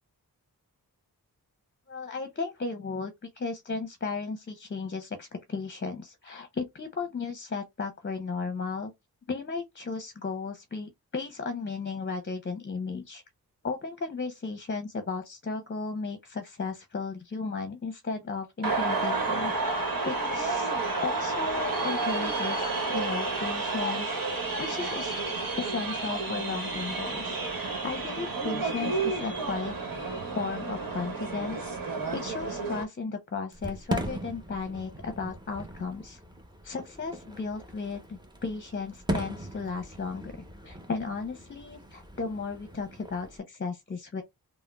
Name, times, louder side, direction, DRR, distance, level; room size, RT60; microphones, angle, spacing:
voice 1, 1.9-8.9 9.3-13.2 13.6-19.5 20.0-20.7 21.0-24.2 24.6-25.2 25.6-29.7 30.3-31.7 32.1-36.2 36.6-40.3 40.6-44.2, left 4 dB, 30° left, 0.7 m, -35 dB
sound 1, 18.6-32.8, right 3 dB, 60° right, 1.2 m, -31 dB
Fireworks, 33.5-43.4, right 1 dB, 10° right, 0.9 m, -39 dB
3.5 x 2.1 x 2.3 m
cardioid pair, 50°, 38 cm